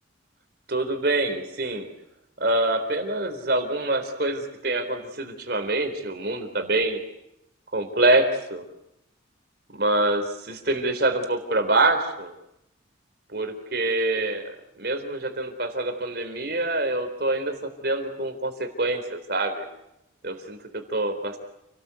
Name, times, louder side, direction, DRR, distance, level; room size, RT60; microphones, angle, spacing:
voice 1, 0.7-1.9 2.4-7.0 7.7-8.7 9.7-12.3 13.3-14.5 14.8-17.5 17.8-19.6 20.2-21.4, right 2 dB, 50° right, 7 dB, 3.8 m, -25 dB
29.0 x 19.0 x 8.4 m, 0.86 s
head